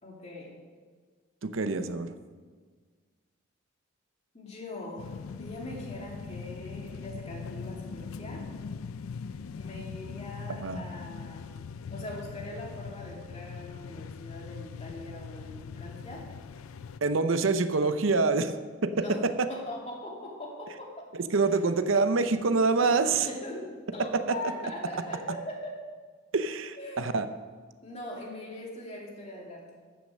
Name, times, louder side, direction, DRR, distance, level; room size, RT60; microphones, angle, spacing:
voice 1, 0.0-0.5 4.3-8.5 9.5-11.6 11.9-16.3 18.9-19.2 19.5-21.1 21.5-21.6 22.8-25.8 26.8-27.1 27.8-29.7, left 1 dB, 30° left, -2 dB, 2.6 m, -41 dB
voice 2, 1.4-2.1 10.6-10.8 17.0-18.5 18.8-19.5 21.1-23.3 24.3-24.4 26.3-27.3, right 3 dB, 70° right, 10 dB, 0.7 m, -26 dB
sound 1, 5.0-17.0, left 5 dB, 85° left, 0.4 m, -41 dB
14.5 x 6.5 x 6.5 m, 1.5 s
head